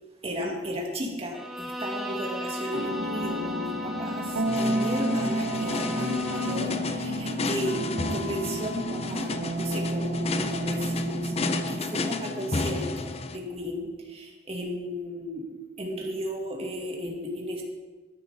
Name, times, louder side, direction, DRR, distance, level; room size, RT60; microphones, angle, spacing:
voice 1, 0.2-7.8 8.1-11.3 11.7-15.4 15.8-17.6, equal, 35° right, 0 dB, 2.1 m, -34 dB
Bowed string instrument, 1.3-6.8, equal, ahead, 1.0 m, -36 dB
sound 1, 2.7-11.8, right 1 dB, 90° right, 1.1 m, -31 dB
sound 2, 4.5-13.4, left 3 dB, 35° left, 0.6 m, -32 dB
12.5 x 9.7 x 4.1 m, 1.3 s
head